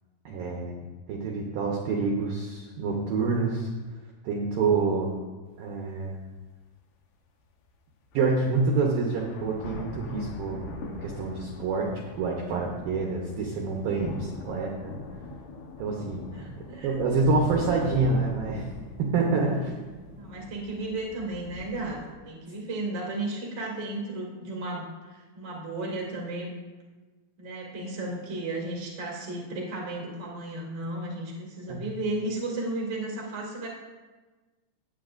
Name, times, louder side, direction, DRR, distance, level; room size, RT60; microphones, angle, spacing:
voice 1, 0.3-3.7 4.2-5.2 5.6-6.2 8.1-11.9 12.2-14.9 15.8-16.5 16.8-18.7 19.0-19.8 31.7-31.8, right 4 dB, 75° right, 0 dB, 2.1 m, -27 dB
sound 1, 5.6-5.7 6.3-6.4 7.7-7.8 8.1-22.1, left 3 dB, 75° left, 2.9 m, -42 dB
voice 2, 16.3-17.3 20.1-22.0 22.2-26.5 27.4-33.7, right 2 dB, 35° right, -3 dB, 1.1 m, -34 dB
17.0 x 8.9 x 2.5 m, 1.3 s
omnidirectional pair, 5.4 m